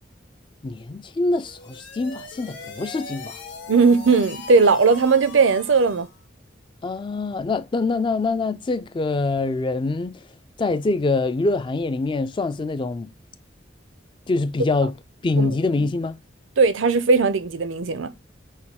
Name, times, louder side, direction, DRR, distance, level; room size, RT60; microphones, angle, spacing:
voice 1, 0.6-3.4 6.8-10.2 10.6-13.1 14.3-14.9 15.2-16.2, left 3 dB, 25° left, 0.3 m, -24 dB
sound 1, 1.4-6.2, left 3 dB, 65° left, 1.5 m, -40 dB
voice 2, 3.7-6.1 15.4-15.5 16.6-18.1, right 4 dB, 80° right, 0.6 m, -18 dB
6.2 x 2.3 x 3.4 m
head